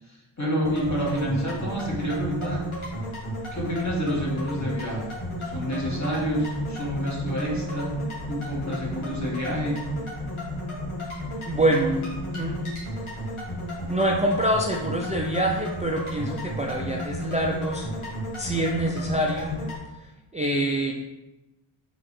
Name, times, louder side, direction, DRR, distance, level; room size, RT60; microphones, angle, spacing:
voice 1, 0.1-2.7 3.5-5.0 5.4-8.0 8.3-9.8, equal, 35° left, -3 dB, 1.5 m, -28 dB
sound 1, 0.6-19.8, equal, 90° left, 1.4 m, -33 dB
voice 2, 11.5-12.1 12.3-12.8 13.9-17.9 18.4-19.6 20.0-20.9, right 1 dB, 15° right, -1 dB, 0.4 m, -25 dB
3.7 x 3.0 x 4.3 m, 1.0 s
cardioid pair, 45°, 48 cm